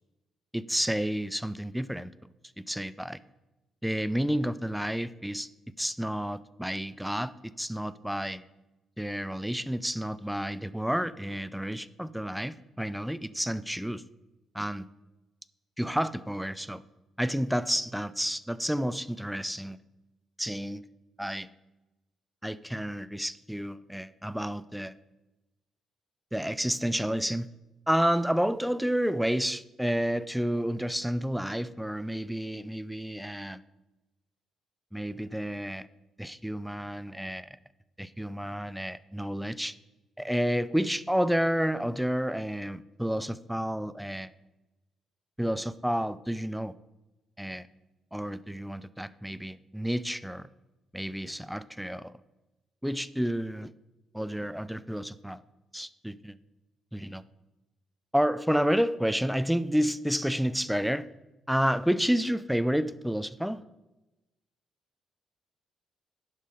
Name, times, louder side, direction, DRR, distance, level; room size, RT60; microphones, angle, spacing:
voice 1, 0.5-2.1 2.6-3.2 3.8-5.5 5.8-8.4 9.0-14.0 14.5-14.9 15.8-16.8 17.2-19.8 20.4-20.8 21.2-21.5 22.4-24.9 26.3-27.5 27.9-33.6 34.9-35.9 36.2-37.6 38.0-39.8 40.2-44.3 45.4-46.7 47.4-47.7 48.1-50.5 50.9-52.1 52.8-53.7 54.1-55.4 55.7-56.4 56.9-57.2 58.1-61.1 61.5-63.6, equal, ahead, 16 dB, 0.4 m, -30 dB
11.0 x 5.6 x 5.0 m, 1.0 s
cardioid pair, 90°, 0 cm